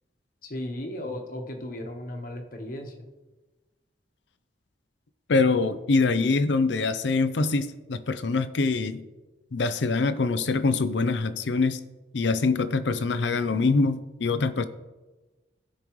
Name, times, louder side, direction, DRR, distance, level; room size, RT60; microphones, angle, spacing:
voice 1, 0.4-3.1, left 1 dB, 55° left, 3 dB, 1.2 m, -35 dB
voice 2, 5.3-9.0 9.5-11.8 12.1-14.6, left 3 dB, 85° left, 12 dB, 0.6 m, -24 dB
16.0 x 5.3 x 3.1 m, 1.2 s
head